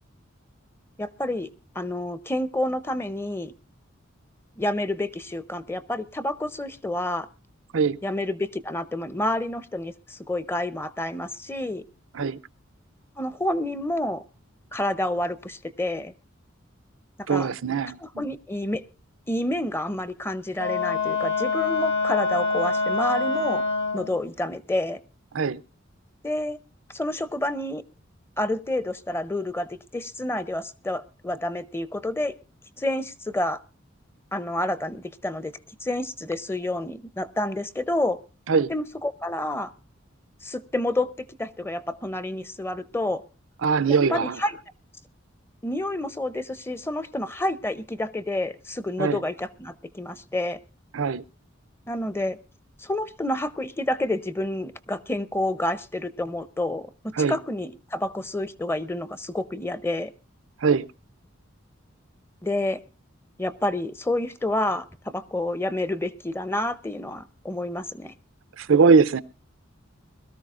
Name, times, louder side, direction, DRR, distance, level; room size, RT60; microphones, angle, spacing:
voice 1, 1.0-1.5 1.7-3.5 4.6-7.3 8.0-11.8 13.2-14.2 14.7-16.1 17.3-17.5 18.0-18.8 19.3-23.6 23.9-25.0 26.2-26.6 26.9-27.8 28.4-32.4 32.8-33.6 34.3-35.5 35.8-38.2 38.7-39.7 40.4-43.2 43.9-44.6 45.6-50.6 51.9-52.4 52.8-56.9 57.2-60.1 62.4-62.8 63.4-68.1, left 1 dB, 10° left, 0.6 m, -29 dB
voice 2, 17.3-18.3 25.3-25.6 38.5-38.7 43.6-44.4 49.0-49.2 50.9-51.2 57.2-57.4 60.6-60.9 68.6-69.2, right 5 dB, 85° right, 0.6 m, -21 dB
Wind instrument woodwind instrument, 20.5-24.2, left 3 dB, 75° left, 3.7 m, -25 dB
22.0 x 13.5 x 2.5 m
head